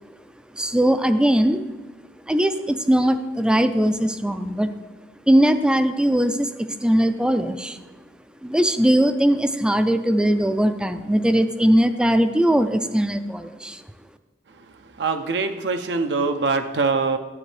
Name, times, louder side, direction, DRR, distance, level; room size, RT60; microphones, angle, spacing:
voice 1, 0.5-1.6 2.3-4.7 5.3-7.8 8.4-13.8, equal, 5° right, 9 dB, 0.3 m, -20 dB
voice 2, 15.0-17.2, right 4 dB, 75° right, 7 dB, 0.5 m, -23 dB
10.5 x 7.4 x 3.2 m, 1.2 s
head